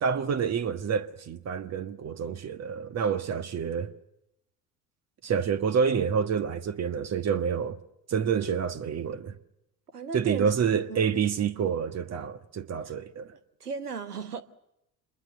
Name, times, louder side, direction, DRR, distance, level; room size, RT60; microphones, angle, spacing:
voice 1, 0.0-3.9 5.2-7.8 8.1-9.3 10.1-13.3, right 7 dB, 35° right, 1.4 m, -28 dB
voice 2, 9.9-10.6 10.9-11.1 12.8-12.9 13.3-14.4, right 5 dB, 85° right, 1.3 m, -36 dB
26.5 x 21.5 x 6.7 m
figure-of-eight pair, 60°, 45 cm